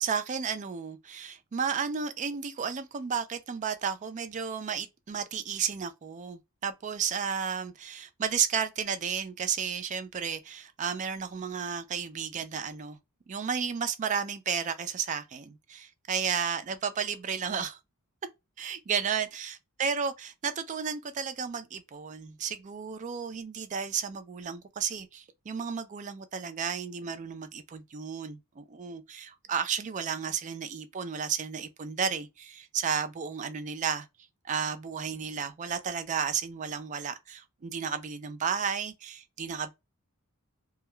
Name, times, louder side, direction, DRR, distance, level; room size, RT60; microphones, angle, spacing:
voice 1, 0.0-13.0 13.3-17.8 18.6-34.1 34.5-39.7, right 6 dB, 35° right, 0.3 m, -33 dB
2.2 x 2.2 x 2.9 m
head